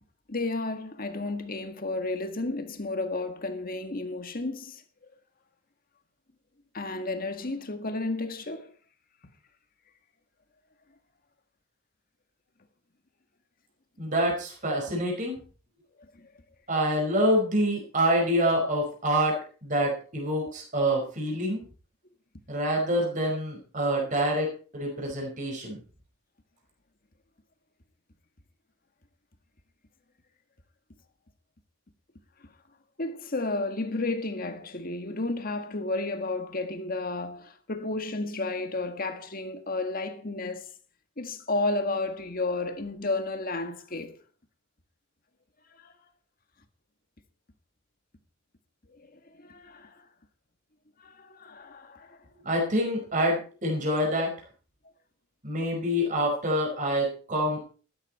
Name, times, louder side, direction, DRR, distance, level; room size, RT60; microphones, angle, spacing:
voice 1, 0.3-4.8 6.7-8.7 16.1-16.3 18.2-18.3 25.0-25.1 33.0-40.7 41.2-44.2 45.7-45.9 48.9-50.0 51.0-52.2, left 2 dB, 45° left, 1.8 m, -32 dB
voice 2, 14.0-15.3 16.7-21.6 22.5-25.8 52.4-54.3 55.4-57.6, equal, 40° right, 5.1 m, -26 dB
13.5 x 13.0 x 4.4 m
head